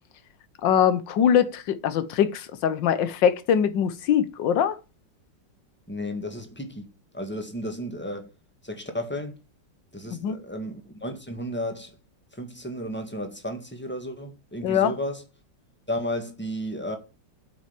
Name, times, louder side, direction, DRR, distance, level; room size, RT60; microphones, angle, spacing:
voice 1, 0.6-4.8 10.1-10.4 14.6-14.9, left 8 dB, 85° left, 1.6 m, -22 dB
voice 2, 5.9-6.9 7.1-8.3 8.6-9.3 9.9-11.9 12.4-15.2 15.9-17.0, equal, 5° left, 1.7 m, -33 dB
8.8 x 6.0 x 7.4 m
omnidirectional pair, 1.9 m